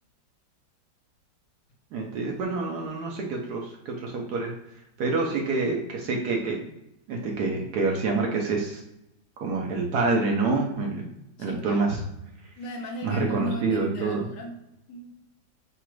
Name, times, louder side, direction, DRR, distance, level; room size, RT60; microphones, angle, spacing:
voice 1, 1.9-4.5 5.0-6.6 7.1-8.8 9.4-11.1 11.4-12.0 13.0-14.3, right 3 dB, 65° right, 0 dB, 1.1 m, -27 dB
voice 2, 11.4-11.9 12.6-15.2, equal, 70° left, 1 dB, 1.4 m, -37 dB
4.0 x 2.4 x 4.5 m, 0.86 s
omnidirectional pair, 2.1 m